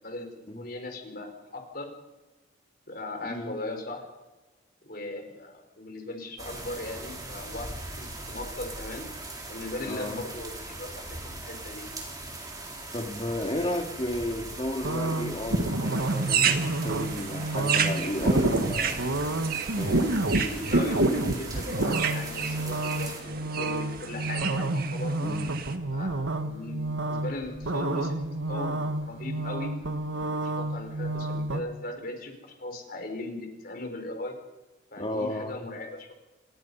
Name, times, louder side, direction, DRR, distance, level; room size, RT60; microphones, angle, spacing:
voice 1, 0.0-1.9 2.9-4.0 4.8-9.1 9.5-11.9 13.6-13.7 20.3-25.1 25.9-28.2 28.5-29.8 30.3-34.4 34.9-36.1, left 2 dB, 45° left, 4 dB, 4.7 m, -38 dB
voice 2, 3.2-3.6 9.8-10.2 12.9-19.0 19.8-20.2 25.2-25.5 35.0-35.6, left 1 dB, 25° left, 3 dB, 2.5 m, -33 dB
sound 1, 6.4-23.2, right 2 dB, 20° right, 3.9 m, -40 dB
sound 2, 14.8-31.6, right 2 dB, 80° right, 1.5 m, -29 dB
sound 3, 15.8-25.8, right 7 dB, 45° right, 1.7 m, -32 dB
29.0 x 18.0 x 5.6 m, 1.1 s
head